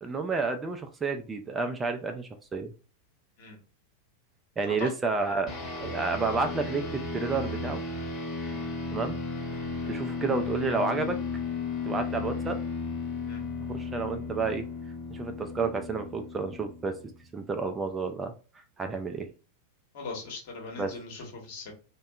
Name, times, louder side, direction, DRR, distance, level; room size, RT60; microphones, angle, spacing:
voice 1, 0.0-2.7 4.6-5.5 5.8-7.8 8.9-9.2 9.9-11.2 11.8-12.6 13.7-14.6 15.1-17.0 17.3-18.3 18.8-19.3 20.8-21.0, right 4 dB, 15° right, 5 dB, 0.3 m, -30 dB
sound 1, 5.5-17.2, left 4 dB, 25° left, 0.9 m, -35 dB
voice 2, 19.9-21.7, left 3 dB, 50° left, 0 dB, 1.0 m, -40 dB
2.6 x 2.2 x 2.3 m, 0.36 s
figure-of-eight pair, 90°, 0 cm